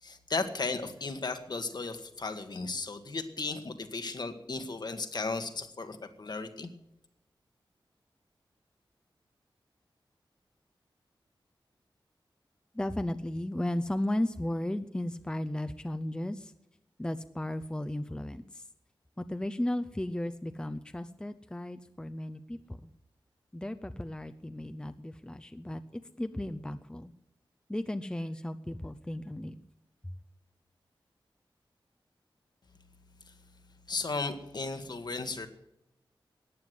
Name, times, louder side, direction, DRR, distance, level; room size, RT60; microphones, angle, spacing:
voice 1, 0.0-6.7 33.9-35.5, left 3 dB, 50° left, 8 dB, 1.6 m, -35 dB
voice 2, 12.7-16.5 17.0-18.7 19.2-22.9 23.5-27.1 27.7-29.6 30.0-30.1, left 1 dB, 10° left, 10 dB, 0.6 m, -35 dB
14.5 x 9.5 x 9.3 m, 0.85 s
wide cardioid pair, 120°, 9 cm